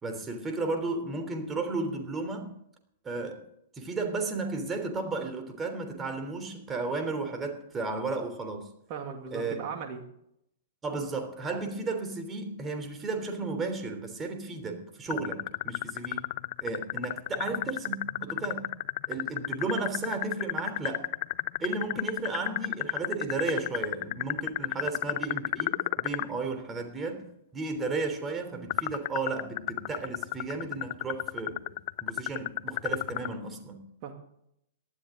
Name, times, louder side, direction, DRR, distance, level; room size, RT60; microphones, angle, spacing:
voice 1, 0.0-2.5 3.0-3.4 3.7-8.7 9.3-9.6 10.8-16.3 16.6-18.7 19.1-21.1 21.6-27.2 27.5-31.7 32.0-33.8, right 3 dB, 20° right, 5 dB, 3.3 m, -34 dB
voice 2, 8.9-10.0 34.0-34.1, right 6 dB, 40° right, 3 dB, 2.2 m, -37 dB
sound 1, 15.1-26.3 28.7-33.3, left 21 dB, 45° left, 0.5 m, -31 dB
18.0 x 12.5 x 3.8 m, 0.74 s
figure-of-eight pair, 105°, 0 cm